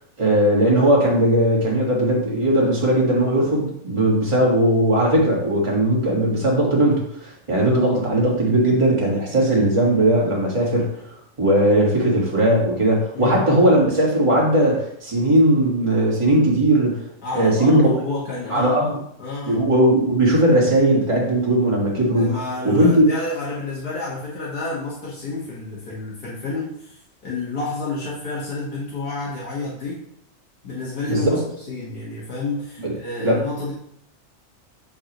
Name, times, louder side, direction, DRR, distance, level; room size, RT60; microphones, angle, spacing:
voice 1, 0.2-17.0 17.3-17.9 18.5-18.9 19.5-22.3 22.6-23.0 31.1-31.4 32.8-32.9 33.2-33.4, right 1 dB, 20° right, -4 dB, 1.6 m, -18 dB
voice 2, 13.1-13.7 17.2-19.6 22.2-27.0 27.2-30.0 30.6-33.7, left 3 dB, 85° left, -7 dB, 2.1 m, -30 dB
7.7 x 4.7 x 3.0 m, 0.71 s
omnidirectional pair, 1.6 m